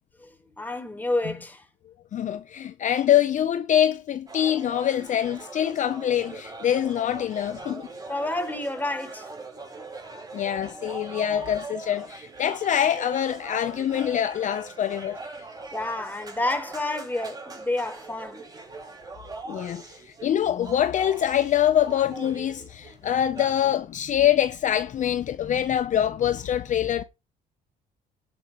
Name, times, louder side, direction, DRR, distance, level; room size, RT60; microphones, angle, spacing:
voice 1, 0.2-1.6 8.1-9.3 15.7-18.5, left 2 dB, 10° left, 3.9 m, -29 dB
voice 2, 2.1-7.9 10.3-15.2 19.5-27.0, left 10 dB, 45° left, 0.7 m, -24 dB
sound 1, 4.3-23.7, right 3 dB, 20° right, 5.4 m, -41 dB
18.0 x 8.9 x 3.1 m
cardioid pair, 110°, 17 cm